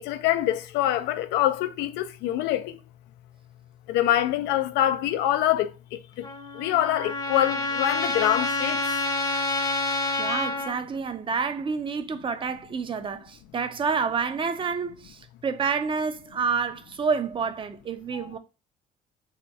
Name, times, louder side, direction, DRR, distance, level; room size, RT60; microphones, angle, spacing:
voice 1, 0.0-2.7 3.9-5.7 6.6-8.8 18.1-18.3, left 12 dB, 85° left, 0.4 m, -25 dB
Trumpet, 6.2-10.8, left 2 dB, 25° left, 0.6 m, -28 dB
voice 2, 10.2-18.4, right 5 dB, 30° right, 0.5 m, -28 dB
3.0 x 2.9 x 3.4 m
cardioid pair, 110°, 17 cm